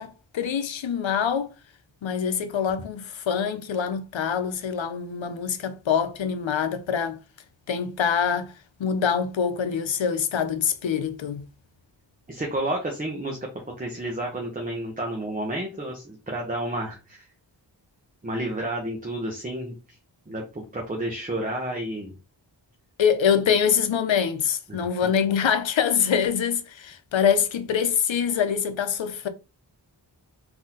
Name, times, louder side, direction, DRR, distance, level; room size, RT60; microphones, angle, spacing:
voice 1, 0.0-1.5 2.0-7.2 7.7-8.5 8.8-11.4 23.0-29.3, left 7 dB, 85° left, 0.7 m, -25 dB
voice 2, 12.3-13.5 13.8-17.3 18.2-20.0 20.3-22.1 24.7-24.8, right 1 dB, 20° right, 1.0 m, -31 dB
3.9 x 2.9 x 3.8 m
wide cardioid pair, 120°, 45 cm